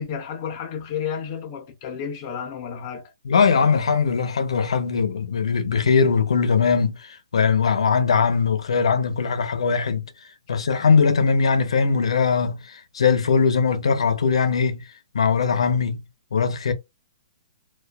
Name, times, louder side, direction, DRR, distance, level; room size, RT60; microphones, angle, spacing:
voice 1, 0.0-3.1, left 7 dB, 20° left, 0.5 m, -31 dB
voice 2, 3.3-7.0 7.3-10.0 10.5-12.6 12.9-14.8 15.1-16.0 16.3-16.7, left 5 dB, 85° left, 0.7 m, -20 dB
2.4 x 2.3 x 2.3 m
hypercardioid pair, 180°, 3 cm